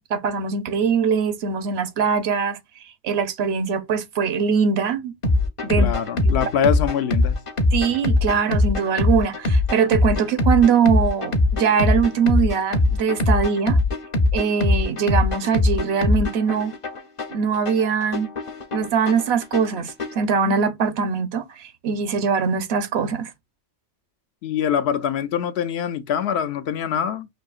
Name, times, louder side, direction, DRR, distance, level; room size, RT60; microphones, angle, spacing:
voice 1, 0.0-5.1 5.6-5.9 6.2-6.4 7.7-13.8 14.3-16.7 17.3-18.3 18.7-23.3, right 6 dB, 75° right, 0.9 m, -22 dB
sound 1, 5.2-20.2, left 2 dB, 35° left, 0.6 m, -22 dB
voice 2, 5.8-7.4 24.4-27.3, left 8 dB, 75° left, 0.8 m, -24 dB
6.2 x 2.7 x 2.3 m
omnidirectional pair, 1.1 m